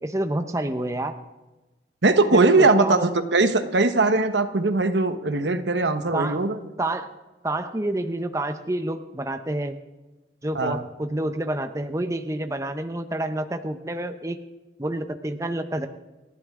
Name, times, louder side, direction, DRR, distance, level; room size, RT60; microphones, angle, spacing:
voice 1, 0.0-1.2 2.3-3.1 6.1-6.4 6.8-7.1 7.4-9.8 10.4-14.4 14.8-15.9, right 1 dB, 15° right, 8 dB, 0.7 m, -28 dB
voice 2, 2.0-6.6 10.5-10.8, right 3 dB, 85° right, 8 dB, 1.2 m, -20 dB
29.5 x 11.5 x 3.7 m, 1.1 s
head